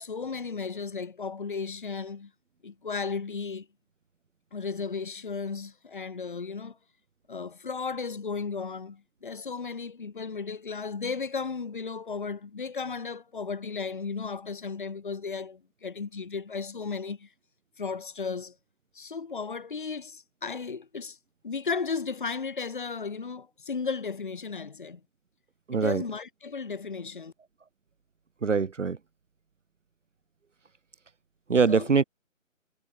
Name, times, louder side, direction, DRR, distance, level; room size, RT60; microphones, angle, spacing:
voice 1, 0.0-2.3 2.6-3.7 4.5-6.8 7.3-17.3 17.8-18.6 18.9-21.2 21.4-25.0 25.7-27.3 31.7-31.9, left 5 dB, 40° left, 2.8 m, -35 dB
voice 2, 25.7-26.0 28.4-29.0 31.5-32.0, right 5 dB, 65° right, 1.3 m, -23 dB
hypercardioid pair, 180°, 41 cm